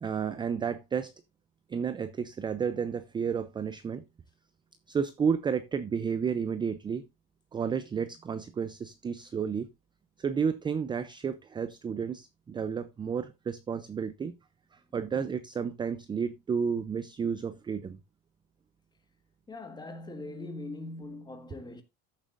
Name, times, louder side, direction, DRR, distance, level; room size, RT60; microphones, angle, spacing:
voice 1, 0.0-1.1 1.7-4.0 4.9-7.0 7.5-9.7 10.2-14.3 14.9-18.0, right 6 dB, 15° right, 0.4 m, -31 dB
voice 2, 19.5-21.8, left 2 dB, 15° left, 1.5 m, -41 dB
13.5 x 7.4 x 2.5 m
cardioid pair, 160°, 32 cm